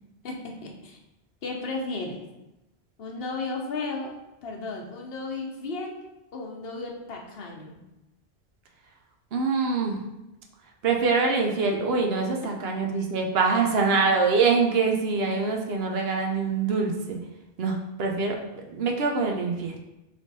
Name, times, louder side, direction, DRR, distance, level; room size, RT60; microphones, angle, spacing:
voice 1, 0.2-1.0 1.4-2.2 3.0-6.0 6.3-7.8, left 3 dB, 65° left, 1 dB, 0.9 m, -34 dB
voice 2, 9.3-10.0 10.8-17.2 17.6-19.8, right 4 dB, 75° right, 2 dB, 0.9 m, -24 dB
3.3 x 3.3 x 4.0 m, 0.95 s
omnidirectional pair, 1.1 m